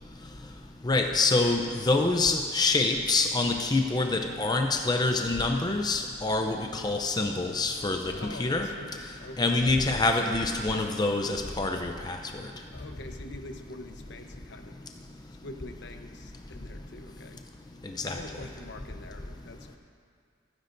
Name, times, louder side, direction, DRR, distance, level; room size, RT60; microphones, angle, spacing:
voice 1, 0.8-8.7 9.4-12.5 17.8-18.2, left 3 dB, 20° left, 4 dB, 0.5 m, -26 dB
voice 2, 8.1-9.6 12.7-14.8 15.4-17.4 18.0-19.8, left 2 dB, 65° left, 5 dB, 0.9 m, -45 dB
26.0 x 9.8 x 2.6 m, 2.2 s
head